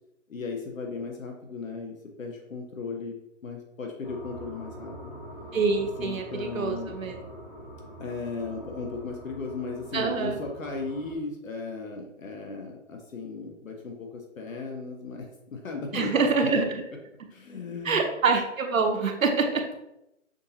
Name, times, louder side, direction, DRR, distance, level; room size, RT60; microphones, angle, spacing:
voice 1, 0.3-3.2 3.4-5.2 6.0-6.9 8.0-16.6 17.3-18.1, left 4 dB, 80° left, 1 dB, 1.0 m, -36 dB
sound 1, 4.0-11.1, right 1 dB, 30° left, 1.2 m, -44 dB
voice 2, 5.5-7.1 9.9-10.4 15.9-16.8 17.8-19.6, right 4 dB, 85° right, 4 dB, 1.0 m, -25 dB
6.3 x 2.7 x 2.8 m, 0.88 s
hypercardioid pair, 175°, 39 cm